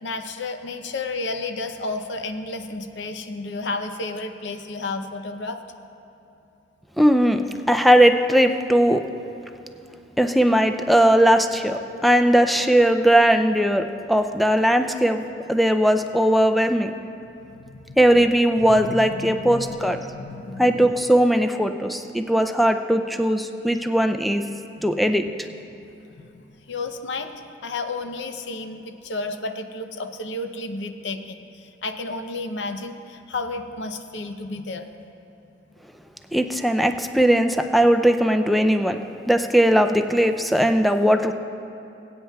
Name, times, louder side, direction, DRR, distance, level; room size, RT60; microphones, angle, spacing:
voice 1, 0.0-5.6 17.4-18.0 18.6-20.9 24.9-34.9, left 3 dB, 80° left, 7 dB, 0.6 m, -32 dB
voice 2, 7.0-9.1 10.2-16.9 18.0-20.0 20.6-24.5 24.8-25.3 36.3-39.0 39.3-41.3, equal, ahead, 6 dB, 0.3 m, -19 dB
22.0 x 8.7 x 2.3 m, 2.8 s
head